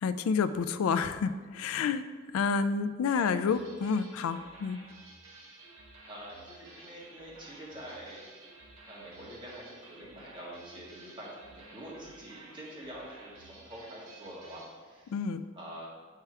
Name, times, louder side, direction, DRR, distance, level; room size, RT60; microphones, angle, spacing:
voice 1, 0.0-2.0 2.3-4.9 15.1-15.4, left 5 dB, 75° left, 12 dB, 0.3 m, -29 dB
sound 1, 3.5-14.8, right 2 dB, 75° right, 1.4 m, -53 dB
voice 2, 6.0-8.3 8.8-15.1 15.5-15.9, right 1 dB, 25° right, -6 dB, 1.7 m, -46 dB
8.2 x 4.6 x 3.4 m, 1.5 s
head